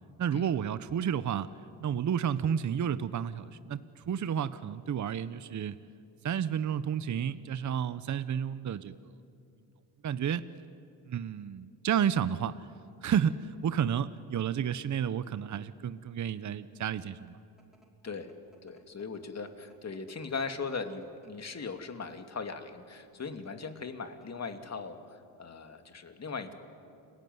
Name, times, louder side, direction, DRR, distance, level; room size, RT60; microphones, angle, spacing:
voice 1, 0.2-1.5 1.8-5.8 6.2-9.1 10.0-10.4 11.1-12.7 13.0-17.4, right 8 dB, 40° right, 14 dB, 0.9 m, -31 dB
sound 1, 17.3-22.4 23.1-23.5 23.9-24.0 24.2-24.7, equal, ahead, 5.5 m, -64 dB
voice 2, 18.6-26.5, left 4 dB, 35° left, 7 dB, 2.8 m, -39 dB
29.5 x 21.0 x 9.6 m, 2.5 s
cardioid pair, 80°, 44 cm